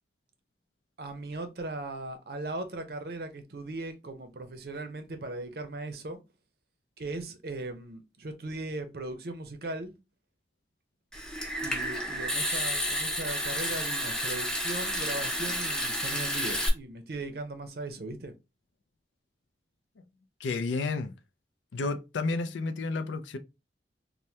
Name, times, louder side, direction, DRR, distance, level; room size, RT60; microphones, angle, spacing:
voice 1, 1.0-6.2 7.0-9.9 11.6-18.3, right 2 dB, 55° right, 0.6 m, -38 dB
Water tap faucet / Sink (filling or washing) / Trickle dribble, 11.1-16.7, equal, 5° left, 0.5 m, -31 dB
voice 2, 20.4-21.1 21.7-23.4, left 3 dB, 85° left, 0.4 m, -31 dB
3.3 x 2.1 x 2.7 m
head